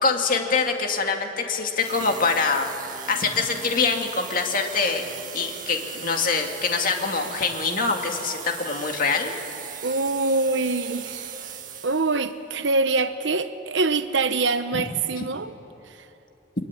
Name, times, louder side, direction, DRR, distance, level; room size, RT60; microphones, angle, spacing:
voice 1, 0.0-2.7 3.1-5.0 5.3-9.3 15.2-15.3, left 4 dB, 45° left, 3 dB, 2.4 m, -24 dB
sound 1, 1.8-12.3, right 8 dB, 45° right, 1.7 m, -38 dB
voice 2, 9.8-11.3 11.8-15.5, right 3 dB, 70° right, 10 dB, 0.9 m, -24 dB
24.0 x 22.5 x 9.9 m, 3.0 s
head